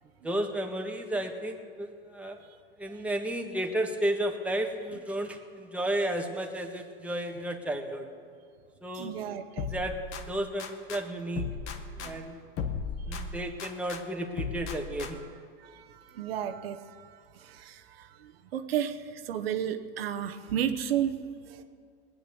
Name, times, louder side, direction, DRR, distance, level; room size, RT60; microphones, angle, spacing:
voice 1, 0.2-2.4 2.8-8.1 8.8-9.1 9.6-10.0 10.3-11.5 12.0-12.4 13.1-15.2, right 1 dB, 5° right, 2 dB, 1.6 m, -32 dB
voice 2, 8.9-9.7 12.0-12.3 13.1-13.2 15.6-21.6, right 9 dB, 90° right, 7 dB, 1.0 m, -34 dB
sound 1, 9.6-11.0 11.3-14.0 14.4-15.4, left 5 dB, 50° left, 1.5 m, -37 dB
19.0 x 8.8 x 6.9 m, 2.2 s
supercardioid pair, 110°, 29 cm